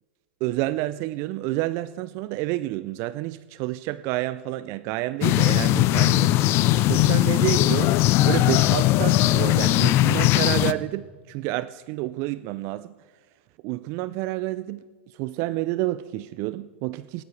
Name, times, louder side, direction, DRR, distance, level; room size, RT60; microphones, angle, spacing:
voice 1, 0.4-6.4 6.9-12.9 13.6-17.2, right 17 dB, 45° right, 0.3 m, -29 dB
sound 1, 5.2-10.7, left 15 dB, 40° left, 0.4 m, -19 dB
18.0 x 11.5 x 3.2 m
hypercardioid pair, 105°, 7 cm